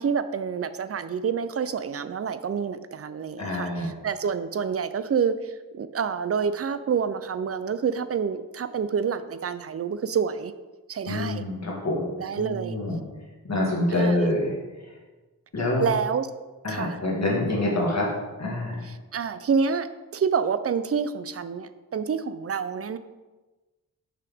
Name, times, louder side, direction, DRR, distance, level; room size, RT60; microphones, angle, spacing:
voice 1, 0.0-3.7 4.0-10.5 10.9-11.4 12.2-12.7 14.0-14.2 15.8-16.3 16.7-16.9 19.1-19.9 20.1-23.0, right 6 dB, 40° right, 12 dB, 0.4 m, -27 dB
voice 2, 3.4-3.9 11.1-13.0 13.4-15.0 15.5-15.9 16.6-18.1 18.4-18.9, left 1 dB, 45° left, -3 dB, 1.8 m, -26 dB
6.0 x 5.5 x 3.6 m, 1.2 s
cardioid pair, 65°, 37 cm